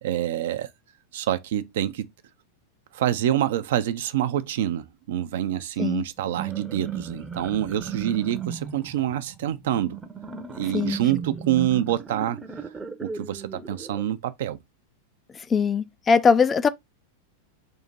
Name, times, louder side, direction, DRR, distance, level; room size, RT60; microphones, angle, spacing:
voice 1, 0.0-0.7 1.1-2.1 2.9-10.0 10.6-12.4 13.0-14.6, right 11 dB, 55° right, 0.4 m, -26 dB
sound 1, 6.2-14.0, right 6 dB, 10° right, 0.6 m, -36 dB
voice 2, 15.5-16.7, left 5 dB, 20° left, 0.3 m, -20 dB
3.7 x 2.8 x 4.0 m
figure-of-eight pair, 90°, 0 cm